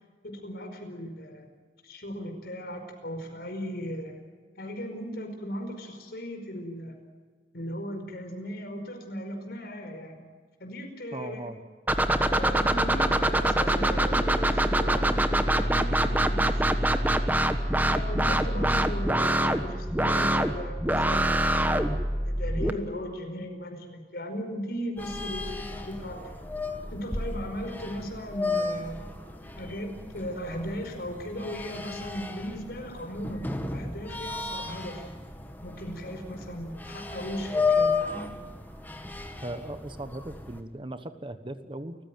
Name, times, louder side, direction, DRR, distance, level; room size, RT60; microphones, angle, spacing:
voice 1, 0.2-1.5 1.8-4.2 4.6-7.0 7.5-10.2 10.6-11.4 12.3-16.6 17.7-21.6 22.2-26.2 26.9-29.0 29.6-35.1 35.6-37.9, equal, 60° left, 4 dB, 5.0 m, -37 dB
voice 2, 11.1-11.6 18.5-18.7 39.4-42.0, right 1 dB, 30° right, 10 dB, 1.1 m, -38 dB
sound 1, 11.9-22.7, right 1 dB, 10° right, 1.3 m, -24 dB
sound 2, 25.0-40.6, left 4 dB, 10° left, 1.9 m, -34 dB
29.0 x 15.0 x 9.3 m, 1.5 s
head